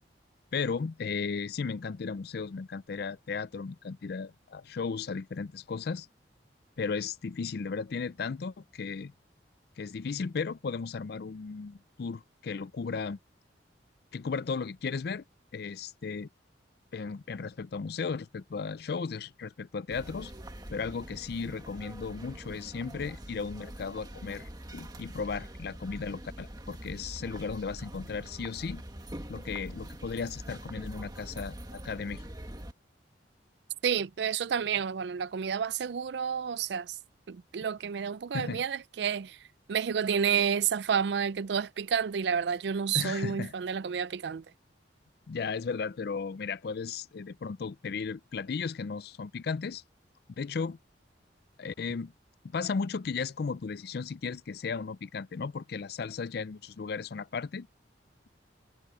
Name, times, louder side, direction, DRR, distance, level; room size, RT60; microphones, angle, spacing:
voice 1, 0.5-6.1 6.8-9.1 9.8-13.2 14.1-15.2 15.5-16.3 16.9-20.3 20.7-28.8 29.3-32.2 38.3-38.6 42.9-43.5 45.3-49.8 50.4-50.8 51.6-52.1 52.4-57.7, left 5 dB, 60° left, 0.4 m, -35 dB
sound 1, 19.9-32.7, right 1 dB, 20° right, 1.6 m, -44 dB
voice 2, 33.8-37.0 37.3-44.4, right 7 dB, 65° right, 0.4 m, -30 dB
head